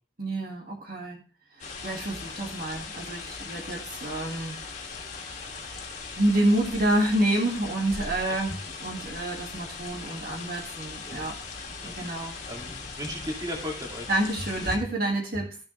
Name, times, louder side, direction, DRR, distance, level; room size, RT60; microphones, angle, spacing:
voice 1, 0.2-1.2 1.5-4.6 5.2-5.6 6.1-8.5 8.8-11.4 11.8-12.3 14.1-15.6, right 1 dB, 50° right, -1 dB, 1.9 m, -28 dB
sound 1, 1.6-14.8, left 4 dB, 40° left, 2.0 m, -39 dB
voice 2, 11.8-14.1, equal, 20° right, 0 dB, 2.4 m, -37 dB
14.0 x 7.0 x 3.2 m, 0.37 s
head